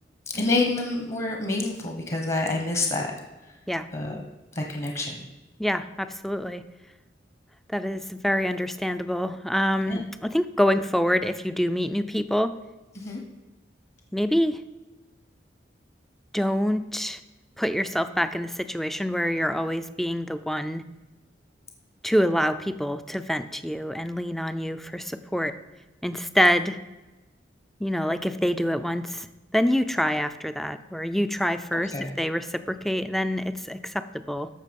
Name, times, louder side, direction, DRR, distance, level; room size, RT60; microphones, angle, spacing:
voice 1, 0.3-3.1 3.9-4.2 4.5-5.3 9.9-10.0 12.9-13.2 31.7-32.1, left 2 dB, 40° left, 2 dB, 1.1 m, -28 dB
voice 2, 5.6-6.6 7.7-12.6 14.1-14.6 16.3-17.2 17.6-20.8 22.0-25.6 26.0-26.8 27.8-29.3 29.5-34.5, equal, ahead, 11 dB, 0.4 m, -26 dB
14.0 x 5.9 x 5.2 m, 1.1 s
head